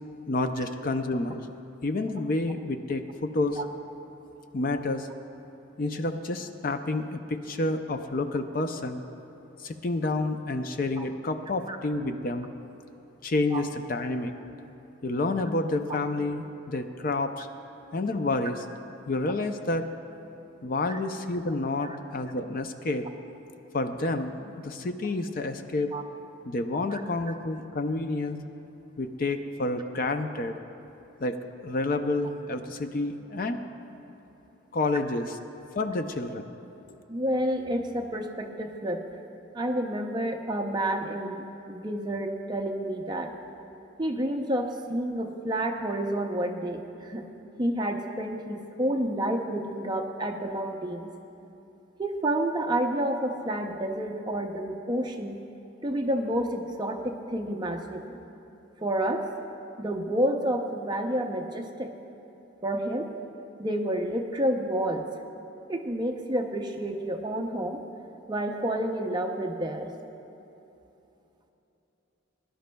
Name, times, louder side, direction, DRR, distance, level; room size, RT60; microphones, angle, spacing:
voice 1, 0.3-1.4 1.8-3.6 4.5-5.1 5.8-9.0 9.6-12.5 13.2-14.3 15.0-17.5 17.9-18.6 19.1-19.9 20.6-23.1 23.7-25.9 26.5-28.4 29.0-30.6 31.2-31.4 31.6-33.6 34.7-35.3 35.8-36.5, left 2 dB, 45° left, 7 dB, 0.4 m, -29 dB
voice 2, 37.1-39.0 39.5-43.3 44.0-47.3 47.6-51.1 52.0-55.4 55.8-58.2 58.8-59.3 59.8-61.9 62.6-63.1 63.6-65.0 65.7-67.8 68.3-69.9, right 1 dB, 20° right, 3 dB, 0.6 m, -29 dB
21.0 x 11.5 x 2.2 m, 3.0 s
head